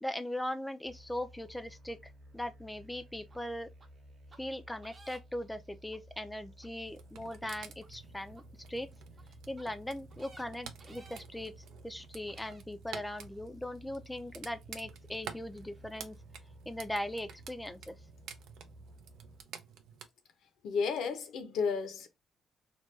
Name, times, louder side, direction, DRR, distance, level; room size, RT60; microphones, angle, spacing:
voice 1, 0.0-3.7 4.4-8.4 8.7-8.9 9.5-11.5 11.8-16.2 16.7-18.0, left 1 dB, 10° left, 0.4 m, -39 dB
sound 1, 0.8-19.4, equal, 60° right, 0.9 m, -55 dB
sound 2, 3.3-3.4 3.8-3.9 4.3-4.4 4.8-5.4 5.9-6.0 6.6-6.7 7.2-7.4 7.8-7.9 8.3-8.4 9.1-9.2 9.6-9.7 10.1-10.4 10.8-11.2 11.8-11.9 12.3-12.6 13.2-13.3, right 3 dB, 35° right, 0.7 m, -57 dB
sound 3, 6.9-20.1, right 8 dB, 85° right, 0.4 m, -51 dB
voice 2, 20.6-22.1, left 5 dB, 80° left, 0.7 m, -32 dB
3.0 x 2.2 x 3.2 m
cardioid pair, 90°, 0 cm